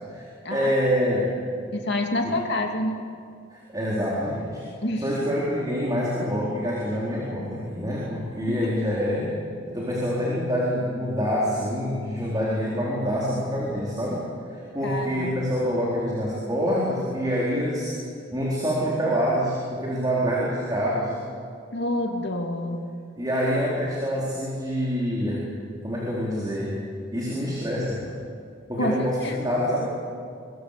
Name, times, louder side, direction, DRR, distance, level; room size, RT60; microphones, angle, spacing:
voice 1, 0.1-1.4 2.2-2.3 3.5-4.6 5.0-9.3 9.7-17.9 18.3-21.2 23.2-25.4 25.8-26.8 27.1-28.1 28.7-29.9, equal, 20° right, -5 dB, 4.3 m, -26 dB
voice 2, 1.7-3.0 4.8-5.1 8.5-8.6 14.8-15.3 21.7-22.8 28.8-28.9 29.2-29.4, left 1 dB, 60° left, 3 dB, 2.7 m, -27 dB
25.0 x 22.5 x 6.9 m, 2.4 s
head